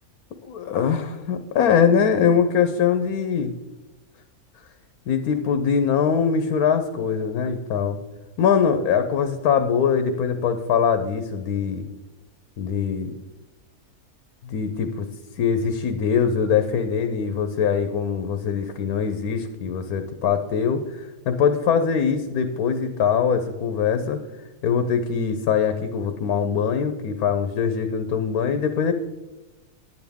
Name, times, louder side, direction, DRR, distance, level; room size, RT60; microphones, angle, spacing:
voice 1, 0.4-3.5 5.1-8.0 8.4-11.9 12.6-13.1 14.4-15.1 15.3-24.2 24.6-28.9, left 7 dB, 75° left, 8 dB, 1.2 m, -22 dB
10.0 x 9.3 x 3.5 m, 1.1 s
omnidirectional pair, 1.6 m